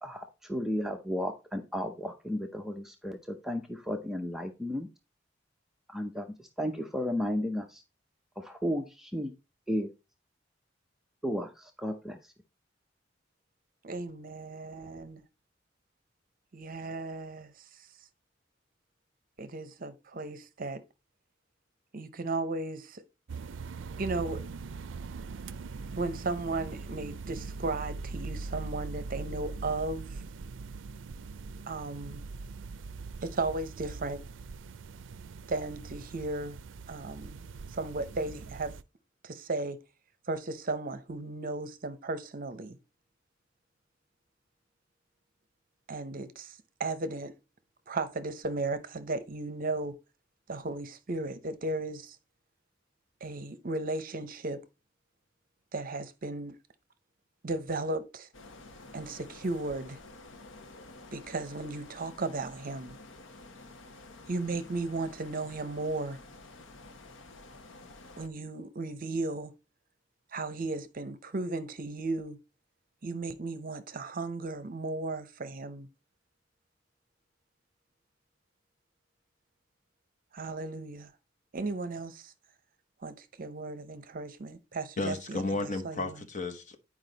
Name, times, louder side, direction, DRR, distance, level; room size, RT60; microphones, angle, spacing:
voice 1, 0.0-4.9 5.9-7.8 8.4-9.3 9.7-9.9 11.2-12.3, equal, ahead, 0.6 m, -34 dB
voice 2, 13.8-15.2 16.5-17.5 19.4-20.8 21.9-23.0 24.0-24.4 26.0-30.1 31.7-32.2 33.2-34.2 35.5-36.6 36.9-37.5 37.7-38.8 39.2-39.8 40.3-42.8 45.9-47.3 47.9-50.0 50.5-52.2 53.2-54.6 55.7-56.6 57.4-58.3 58.9-60.0 61.1-63.0 64.3-66.2 68.2-69.5 70.3-72.4 73.0-75.9 80.3-81.1 81.5-82.3 83.0-85.4 85.8-86.2, right 2 dB, 45° right, 0.7 m, -35 dB
sound 1, 23.3-38.8, right 4 dB, 75° right, 0.4 m, -41 dB
sound 2, 58.3-68.3, left 2 dB, 80° left, 1.1 m, -50 dB
voice 3, 85.0-86.8, left 2 dB, 40° left, 1.1 m, -33 dB
9.5 x 4.9 x 3.9 m
head